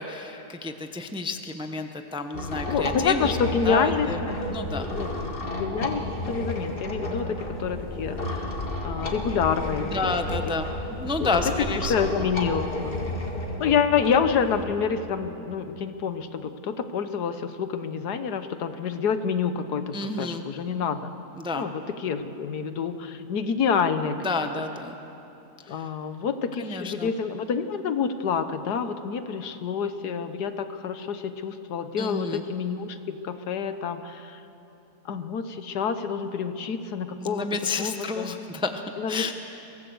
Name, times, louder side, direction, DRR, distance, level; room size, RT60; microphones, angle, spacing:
voice 1, 0.0-4.2 4.5-4.9 7.0-7.4 9.9-12.3 19.9-20.5 21.4-21.7 24.2-25.0 25.7-25.9 26.6-27.1 32.0-32.4 37.2-39.4, left 3 dB, 5° right, 6 dB, 0.6 m, -31 dB
sound 1, 2.3-14.6, left 1 dB, 35° left, 2.2 m, -32 dB
voice 2, 2.7-4.4 4.7-5.3 5.6-8.6 8.8-10.1 11.2-11.3 11.9-12.9 13.6-21.1 21.5-21.7 22.0-24.2 25.7-34.4 35.0-37.5 37.8-38.4 39.0-39.2, left 6 dB, 75° left, 10 dB, 1.5 m, -28 dB
23.0 x 17.5 x 7.9 m, 2.9 s
omnidirectional pair, 1.7 m